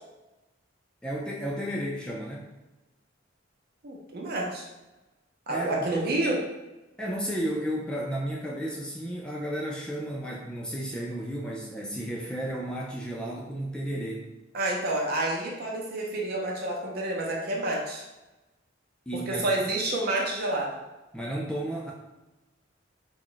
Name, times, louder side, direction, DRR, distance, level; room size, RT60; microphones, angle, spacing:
voice 1, 1.0-2.4 5.5-6.1 7.0-14.3 19.1-19.4 21.1-21.9, right 1 dB, 5° left, -3 dB, 0.3 m, -33 dB
voice 2, 3.8-4.7 5.5-6.4 14.5-18.0 19.1-20.7, right 2 dB, 55° right, -1 dB, 0.6 m, -29 dB
2.3 x 2.0 x 3.8 m, 1.1 s
head